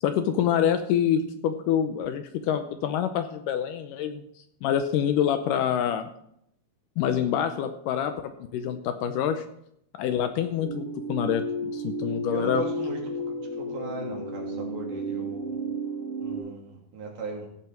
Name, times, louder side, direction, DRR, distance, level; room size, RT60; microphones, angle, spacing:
voice 1, 0.0-4.2 4.6-6.1 7.0-8.1 8.5-9.4 10.0-12.6, left 9 dB, 80° left, 8 dB, 2.1 m, -26 dB
sound 1, 10.6-16.4, right 1 dB, 50° left, 3.9 m, -33 dB
voice 2, 12.3-13.0 13.4-15.5 16.2-17.5, right 3 dB, 80° right, 0 dB, 4.4 m, -37 dB
16.0 x 7.8 x 4.7 m, 0.73 s
omnidirectional pair, 4.3 m